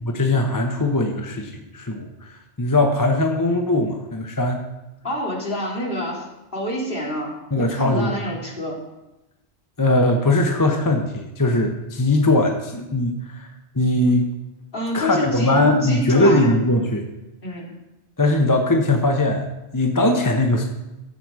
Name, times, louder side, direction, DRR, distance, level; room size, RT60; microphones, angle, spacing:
voice 1, 0.0-4.6 7.5-8.2 9.8-14.3 14.9-17.0 18.2-19.4 19.7-20.6, left 2 dB, 20° left, 3 dB, 0.9 m, -20 dB
voice 2, 5.0-8.8 14.7-16.6 17.4-17.7, left 1 dB, 50° left, -2 dB, 2.6 m, -27 dB
13.5 x 7.8 x 4.8 m, 0.99 s
omnidirectional pair, 1.2 m